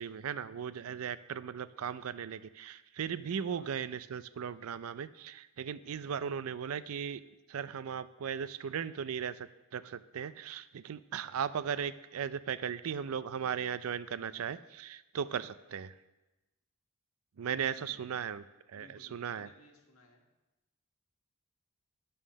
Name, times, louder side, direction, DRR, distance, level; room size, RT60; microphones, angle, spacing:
voice 1, 0.0-7.2 7.5-16.0 17.4-19.5, right 7 dB, 80° right, 15 dB, 0.4 m, -37 dB
voice 2, 17.5-18.0 18.7-20.2, left 2 dB, 80° left, 3 dB, 1.5 m, -58 dB
11.5 x 5.5 x 6.2 m, 1.0 s
head